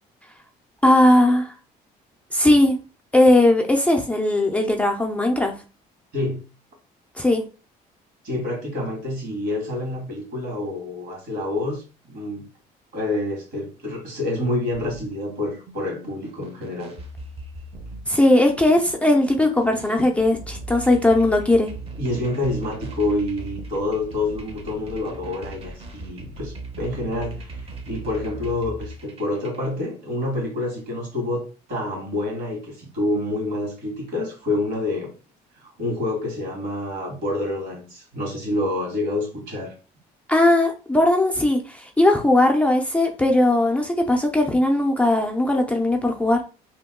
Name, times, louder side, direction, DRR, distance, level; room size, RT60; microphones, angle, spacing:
voice 1, 0.8-1.5 2.3-2.8 3.1-5.5 7.2-7.4 18.1-21.7 40.3-46.4, left 1 dB, 10° left, 1 dB, 0.5 m, -18 dB
voice 2, 8.2-11.8 12.1-12.5 12.9-17.0 22.0-31.4 31.7-35.1 35.6-39.7, left 2 dB, 75° right, 1 dB, 1.7 m, -27 dB
sound 1, 14.7-29.7, right 2 dB, 35° right, 0.7 m, -39 dB
2.9 x 2.2 x 3.6 m, 0.34 s
cardioid pair, 110°, 17 cm